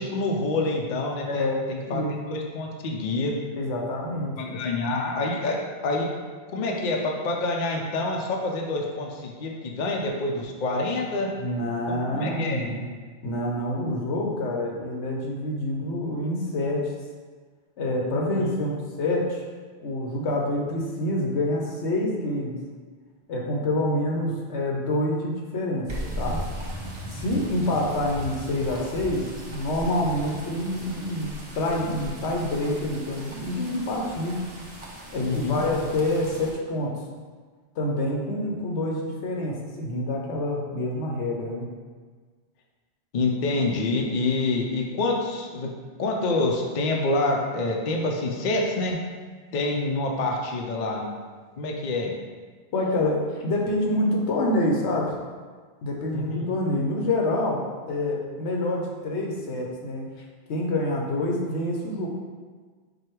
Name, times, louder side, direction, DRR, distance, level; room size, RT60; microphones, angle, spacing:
voice 1, 0.0-3.4 4.4-5.6 5.8-6.1 6.5-11.3 11.9-12.7 18.4-18.7 35.2-35.6 43.1-45.7 46.0-49.0 49.5-51.1 51.6-52.1 56.1-56.5, left 2 dB, 55° left, 0 dB, 0.6 m, -27 dB
voice 2, 1.3-2.1 3.6-4.9 11.4-12.8 13.2-16.9 17.8-19.4 19.8-22.6 23.3-25.9 26.2-26.4 27.1-34.4 35.1-36.9 37.8-41.7 52.7-55.1 55.8-57.6 57.9-60.1 60.5-62.1, left 1 dB, 80° left, -1 dB, 1.1 m, -27 dB
sound 1, 25.9-36.5, equal, 35° right, 0.6 m, -38 dB
4.8 x 2.3 x 4.4 m, 1.5 s
omnidirectional pair, 1.1 m